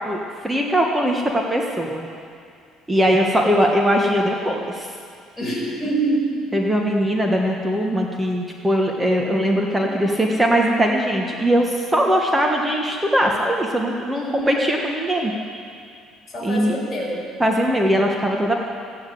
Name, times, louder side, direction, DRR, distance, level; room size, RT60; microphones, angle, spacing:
voice 1, 0.1-2.1 2.9-4.9 6.5-15.3 16.4-16.8 17.4-18.5, equal, 10° right, 0 dB, 1.4 m, -20 dB
voice 2, 5.4-6.4 14.1-14.5 16.3-17.3, right 2 dB, 15° left, -5 dB, 5.0 m, -25 dB
15.0 x 9.9 x 7.7 m, 2.3 s
cardioid pair, 115°, 0 cm